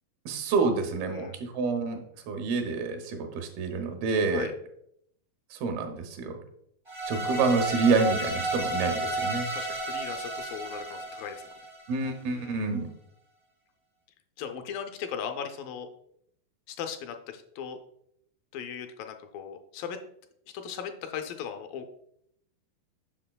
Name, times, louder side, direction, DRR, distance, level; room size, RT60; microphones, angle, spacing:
voice 1, 0.3-4.5 5.5-6.4 7.1-9.5 11.9-12.9, right 4 dB, 85° right, 4 dB, 2.7 m, -28 dB
voice 2, 1.1-1.4 4.3-4.5 9.5-11.4 12.3-12.7 14.4-15.9 16.7-17.8 18.5-20.0 20.5-22.0, left 7 dB, 80° left, 6 dB, 2.1 m, -38 dB
sound 1, 6.9-12.1, right 2 dB, 50° right, 0.3 m, -32 dB
7.6 x 5.9 x 2.2 m, 0.72 s
omnidirectional pair, 4.2 m